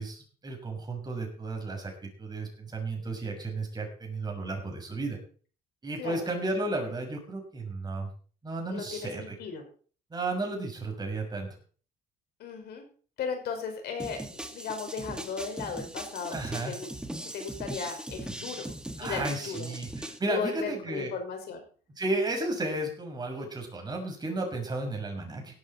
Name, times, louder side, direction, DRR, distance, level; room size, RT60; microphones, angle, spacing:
voice 1, 0.0-5.2 5.8-8.1 8.4-9.3 10.1-11.5 16.3-16.7 19.0-21.1 21.9-25.6, right 2 dB, 25° right, 2 dB, 6.2 m, -33 dB
voice 2, 6.0-6.3 8.7-9.6 12.4-12.8 13.2-16.9 17.3-18.7 19.0-19.7 20.3-21.6, left 5 dB, 70° left, 4 dB, 5.4 m, -36 dB
sound 1, 14.0-20.2, right 1 dB, 5° right, 2.1 m, -39 dB
17.5 x 12.5 x 4.4 m, 0.42 s
cardioid pair, 110°, 17 cm